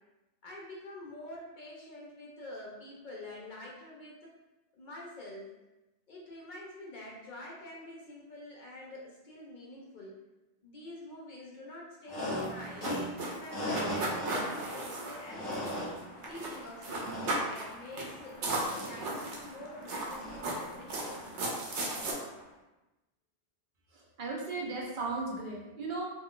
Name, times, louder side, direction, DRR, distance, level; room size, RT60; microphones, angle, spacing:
voice 1, 0.4-4.3 4.7-5.5 6.1-10.1 10.6-12.9 13.3-15.8 16.3-21.4, left 1 dB, 55° left, -3 dB, 0.6 m, -47 dB
sound 1, 12.1-22.4, equal, 25° left, 1.1 m, -40 dB
sound 2, 12.4-16.0 16.2-16.6 16.8-17.7 18.0-18.1 18.4-19.5 19.9-22.1, right 2 dB, 85° right, 0.9 m, -35 dB
voice 2, 23.9-26.1, right 3 dB, 55° right, -2 dB, 0.6 m, -36 dB
2.4 x 2.3 x 3.6 m, 1.0 s
omnidirectional pair, 1.1 m